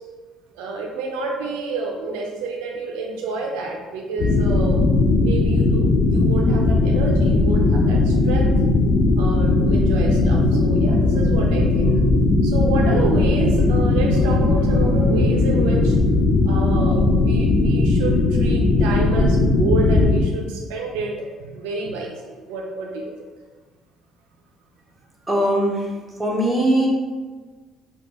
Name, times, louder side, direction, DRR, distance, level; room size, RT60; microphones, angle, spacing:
voice 1, 0.5-4.9 5.2-8.5 9.2-11.9 12.4-16.0 16.5-23.2, right 3 dB, 90° right, 1 dB, 0.3 m, -29 dB
sound 1, 4.2-20.2, left 2 dB, 65° left, 0.4 m, -18 dB
voice 2, 25.3-25.9 26.2-26.9, right 1 dB, 10° right, -3 dB, 0.7 m, -20 dB
2.6 x 2.2 x 2.8 m, 1.3 s
supercardioid pair, 75°, 0 cm